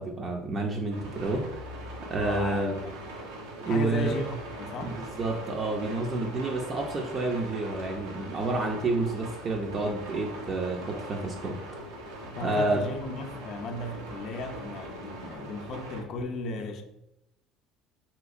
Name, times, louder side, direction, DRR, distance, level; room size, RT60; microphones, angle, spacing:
voice 1, 0.0-1.8 2.1-2.7 3.6-4.1 4.8-11.6 12.4-12.8, right 2 dB, 35° right, 0.4 m, -29 dB
sound 1, 0.9-16.0, right 1 dB, 90° right, 0.7 m, -41 dB
voice 2, 2.2-3.0 3.6-5.0 12.2-16.8, left 3 dB, 50° left, 0.4 m, -35 dB
3.4 x 2.8 x 2.4 m
supercardioid pair, 100°, 0 cm